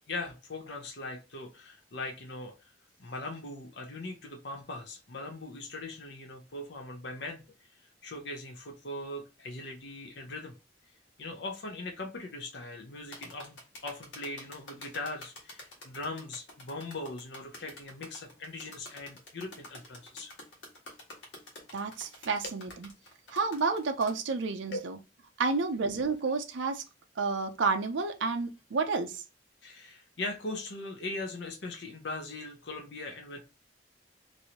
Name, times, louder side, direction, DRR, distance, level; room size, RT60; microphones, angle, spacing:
voice 1, 0.1-2.7 3.0-7.4 8.0-10.5 11.2-20.3 22.4-22.5 24.7-24.9 29.6-33.4, left 2 dB, 65° left, 0.7 m, -40 dB
sound 1, 13.1-24.2, left 1 dB, 85° left, 1.4 m, -48 dB
voice 2, 21.7-22.7 23.3-24.9 25.4-26.8 27.2-29.2, right 4 dB, 85° right, 0.5 m, -30 dB
3.0 x 2.6 x 2.9 m
head